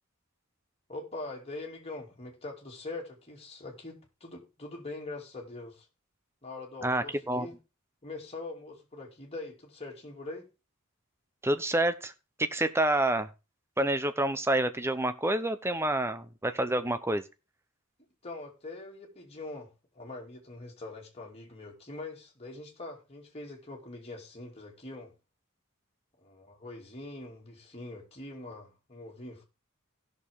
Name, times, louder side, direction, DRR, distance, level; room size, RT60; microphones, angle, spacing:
voice 1, 0.9-5.9 6.4-7.6 8.0-10.5 18.2-25.1 26.2-29.4, left 2 dB, 30° left, 2.6 m, -43 dB
voice 2, 6.8-7.5 11.4-12.1 12.4-13.3 13.8-17.2, right 1 dB, 10° right, 0.7 m, -28 dB
16.5 x 6.5 x 3.6 m
head